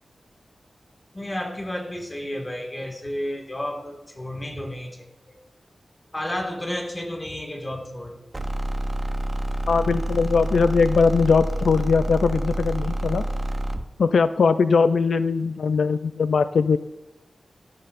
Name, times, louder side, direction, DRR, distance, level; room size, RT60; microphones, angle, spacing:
voice 1, 1.1-5.4 6.1-8.3, left 1 dB, 20° left, 1 dB, 2.0 m, -32 dB
sound 1, 8.3-13.9, right 1 dB, 25° right, 0.8 m, -28 dB
voice 2, 9.7-13.2 14.0-16.8, left 5 dB, 85° left, 11 dB, 0.3 m, -20 dB
16.5 x 12.0 x 2.6 m, 0.99 s
wide cardioid pair, 115°, 0 cm